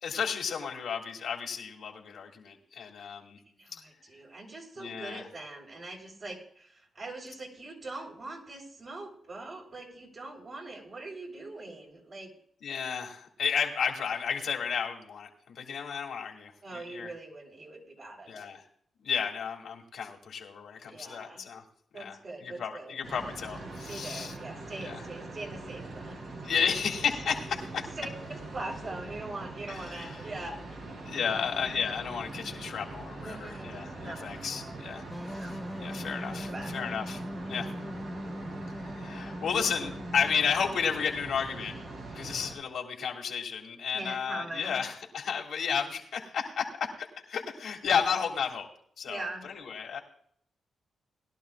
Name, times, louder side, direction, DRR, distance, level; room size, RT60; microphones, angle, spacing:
voice 1, 0.0-3.4 4.8-5.3 12.6-17.1 18.3-18.6 19.0-21.6 21.9-24.3 24.8-25.0 26.4-27.9 29.7-30.2 31.1-37.2 37.5-37.7 38.8-41.8 42.1-48.7 49.0-50.0, left 6 dB, 75° left, 0 dB, 2.3 m, -33 dB
voice 2, 3.5-12.3 16.6-18.5 20.9-21.4 21.9-22.9 23.9-26.2 26.6-26.8 28.0-30.6 31.2-31.8 33.2-34.2 34.9-35.6 36.4-36.7 43.9-44.8 49.1-49.5, right 2 dB, 50° right, 0 dB, 3.8 m, -42 dB
sound 1, 23.0-42.5, right 2 dB, 70° right, 3.7 m, -42 dB
sound 2, 35.1-40.7, equal, ahead, 0.4 m, -40 dB
20.5 x 12.0 x 2.4 m, 0.65 s
cardioid pair, 70°, 0 cm